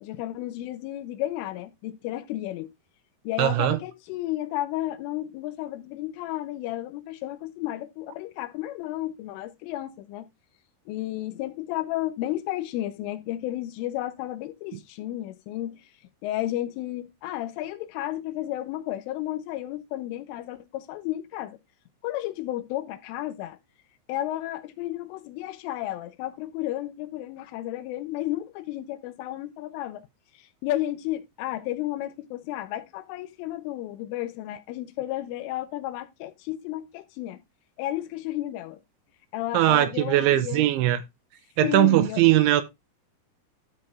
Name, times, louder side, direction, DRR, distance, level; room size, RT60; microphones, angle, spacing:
voice 1, 0.0-2.7 3.2-10.3 10.9-15.8 16.2-21.6 22.0-23.6 24.1-30.0 30.4-37.4 37.8-38.8 39.3-40.7 41.6-42.2, left 14 dB, 90° left, 3.4 m, -32 dB
voice 2, 3.4-3.8 39.5-41.0 41.6-42.6, right 14 dB, 80° right, 3.0 m, -20 dB
12.5 x 4.7 x 3.6 m
omnidirectional pair, 5.6 m